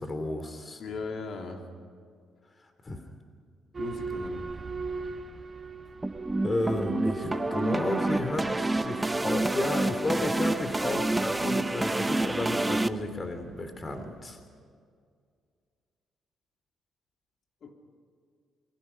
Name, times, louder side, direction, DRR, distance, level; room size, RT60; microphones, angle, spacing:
voice 1, 0.0-0.8 2.8-3.0 6.4-14.4, left 2 dB, 30° left, 7 dB, 2.8 m, -32 dB
voice 2, 0.8-1.6 3.8-4.5 17.6-17.7, left 4 dB, 60° left, 2 dB, 3.6 m, -37 dB
Boat Water vehicle / Alarm, 3.7-14.4, right 3 dB, 35° right, 1.6 m, -41 dB
sound 1, 6.0-12.9, right 2 dB, 15° right, 0.8 m, -28 dB
29.0 x 22.0 x 5.7 m, 2.1 s
cardioid pair, 90°, 0 cm